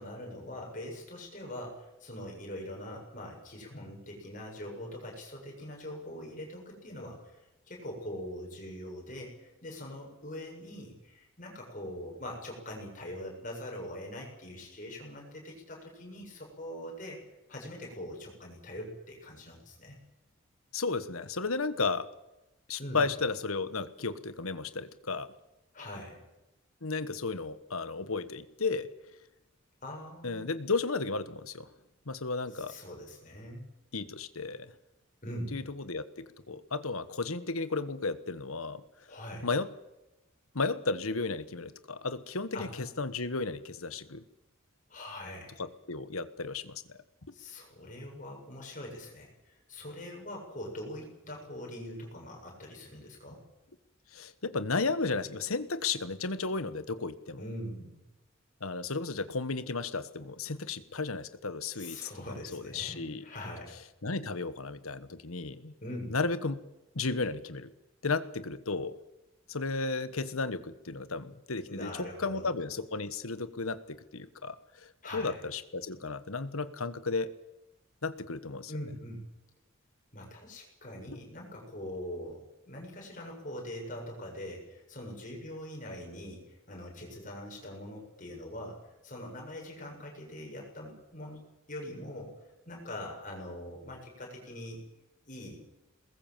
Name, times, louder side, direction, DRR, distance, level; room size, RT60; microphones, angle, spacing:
voice 1, 0.0-7.4 7.7-17.2 17.5-20.0 22.8-23.0 25.7-26.2 29.8-30.5 32.5-33.7 35.2-35.6 39.1-39.5 42.5-42.7 44.9-45.6 47.3-53.4 57.4-58.0 61.7-63.8 65.8-66.2 71.7-72.5 75.0-75.4 78.7-79.3 80.1-91.4 91.7-92.3 92.7-94.9 95.2-95.6, left 1 dB, 35° left, 0 dB, 7.2 m, -43 dB
voice 2, 20.7-22.1 22.7-25.3 26.8-28.9 30.2-31.7 32.1-32.7 33.9-34.7 35.5-38.8 39.4-39.7 40.5-44.2 45.6-47.0 54.1-57.4 58.6-62.0 62.3-63.2 64.0-65.7 66.1-66.6 66.9-67.7 68.0-68.9 69.5-77.3 78.0-78.7, left 3 dB, 85° left, 13 dB, 1.4 m, -34 dB
23.0 x 20.5 x 7.5 m, 0.96 s
head